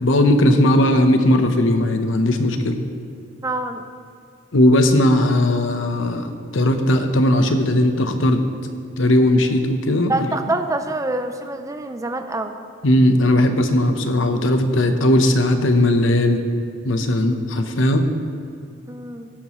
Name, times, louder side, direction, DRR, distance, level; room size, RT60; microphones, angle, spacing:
voice 1, 0.0-2.8 4.5-8.4 9.0-10.1 12.8-16.4 16.8-18.0, left 1 dB, 75° left, 6 dB, 0.9 m, -17 dB
voice 2, 3.4-3.9 10.1-12.5 18.9-19.3, right 2 dB, 15° right, 7 dB, 0.5 m, -26 dB
17.5 x 9.8 x 3.1 m, 2.2 s
head